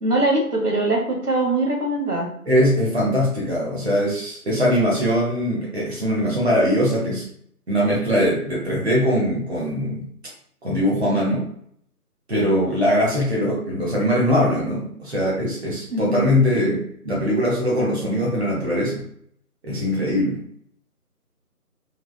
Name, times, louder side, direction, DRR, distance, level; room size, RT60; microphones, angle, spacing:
voice 1, 0.0-2.3 15.9-16.3, right 2 dB, 80° right, 0 dB, 1.2 m, -22 dB
voice 2, 2.5-7.2 7.7-10.1 10.6-11.5 12.3-19.0 19.6-20.4, equal, 45° right, -4 dB, 0.9 m, -21 dB
3.2 x 2.4 x 2.2 m, 0.64 s
figure-of-eight pair, 175°, 46 cm